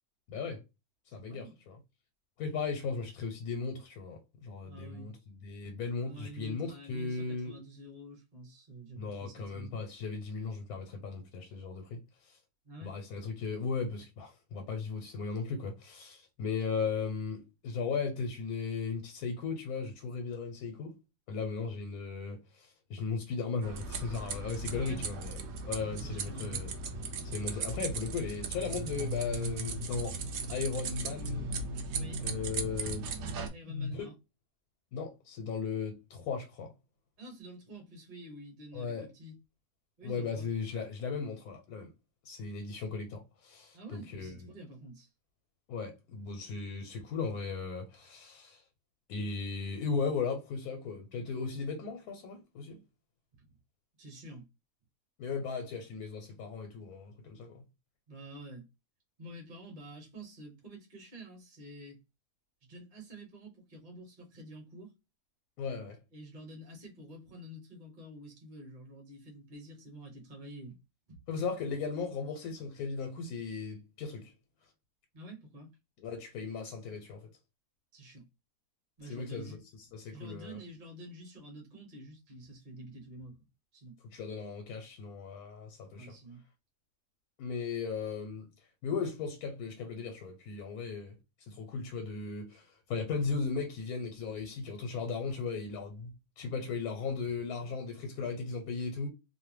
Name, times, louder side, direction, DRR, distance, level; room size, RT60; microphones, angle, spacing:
voice 1, 0.3-0.6 1.1-1.8 2.4-7.5 8.9-12.4 12.8-21.0 21.3-25.4 25.6-26.7 27.2-30.1 30.5-31.5 32.2-33.3 33.6-34.1 34.9-36.7 38.7-39.1 40.0-41.9 42.2-44.3 45.7-48.6 49.1-52.8 55.2-57.6 65.6-66.0 71.3-74.3 76.0-77.3 79.1-79.6 79.9-80.6 84.1-86.1 87.4-88.5 88.8-91.1 91.5-96.1 96.4-99.1, left 5 dB, 85° left, 1.1 m, -37 dB
voice 2, 1.1-1.6 4.6-5.2 6.0-9.8 12.6-12.9 24.7-25.0 25.9-26.6 31.9-32.2 33.5-34.1 37.2-39.3 40.0-40.5 43.7-45.1 53.5-53.6 54.0-54.5 58.1-58.7 59.2-62.0 62.6-64.9 66.1-70.8 71.1-71.2 75.1-75.7 77.9-78.3 79.0-79.6 80.1-83.4 83.7-84.0 86.0-86.4, right 1 dB, 35° right, 0.9 m, -48 dB
sound 1, 23.6-33.5, right 3 dB, 65° right, 0.7 m, -37 dB
2.6 x 2.0 x 3.1 m
omnidirectional pair, 1.6 m